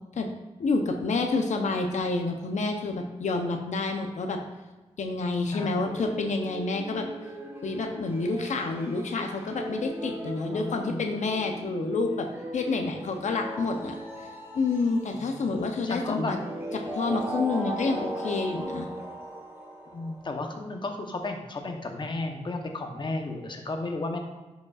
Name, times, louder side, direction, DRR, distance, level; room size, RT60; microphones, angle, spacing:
voice 1, 0.6-4.4 5.0-7.0 7.6-12.3 12.5-14.0 14.5-16.4 16.9-18.9, left 3 dB, 85° left, 4 dB, 0.7 m, -28 dB
voice 2, 5.5-6.0 10.5-11.1 15.2-15.3 15.8-16.4 19.9-24.2, left 2 dB, 40° left, 4 dB, 0.9 m, -33 dB
sound 1, 5.8-20.3, right 1 dB, 20° right, 1.1 m, -38 dB
11.0 x 5.2 x 2.4 m, 1.2 s
wide cardioid pair, 120°, 12 cm